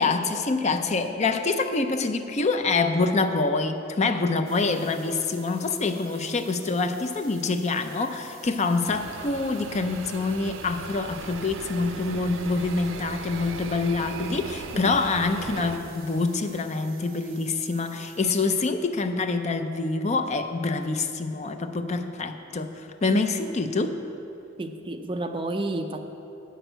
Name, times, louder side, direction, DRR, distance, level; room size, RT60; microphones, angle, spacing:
voice 1, 0.0-24.0, left 3 dB, 35° left, 8 dB, 0.5 m, -26 dB
voice 2, 4.1-4.5 5.9-6.0 14.7-14.9 23.1-23.3 24.6-26.0, right 1 dB, 25° right, 6 dB, 0.5 m, -32 dB
sound 1, 4.4-18.7, right 5 dB, 55° right, 1.3 m, -50 dB
sound 2, 8.8-15.8, right 4 dB, 75° right, 0.5 m, -38 dB
9.1 x 6.2 x 7.8 m, 2.8 s
head